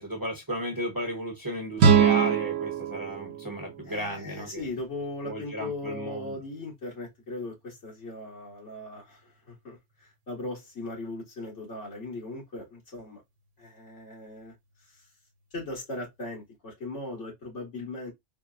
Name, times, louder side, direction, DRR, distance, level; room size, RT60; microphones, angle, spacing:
voice 1, 0.0-4.6 5.2-6.4, equal, 20° right, 0.9 m, -34 dB
sound 1, 1.8-4.8, right 7 dB, 90° right, 0.9 m, -24 dB
voice 2, 3.9-13.2 13.6-14.5 14.8-15.1 15.5-18.1, left 2 dB, 80° left, 2.0 m, -38 dB
3.7 x 2.2 x 2.4 m
omnidirectional pair, 1.2 m